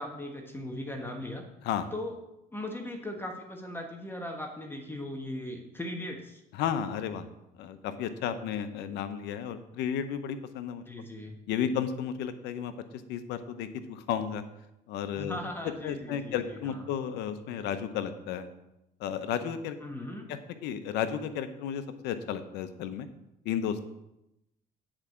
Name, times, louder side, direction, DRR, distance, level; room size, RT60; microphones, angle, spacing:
voice 1, 0.0-1.4 1.9-2.1 2.5-6.4 10.9-11.4 15.2-16.8 19.8-20.3, left 1 dB, 15° left, 2 dB, 1.3 m, -38 dB
voice 2, 6.5-7.3 7.6-10.8 11.5-14.4 14.9-15.4 15.8-18.5 19.0-19.8 20.3-23.1 23.4-23.8, left 8 dB, 90° left, 11 dB, 0.8 m, -33 dB
9.0 x 4.9 x 7.3 m, 0.87 s
cardioid pair, 110°, 17 cm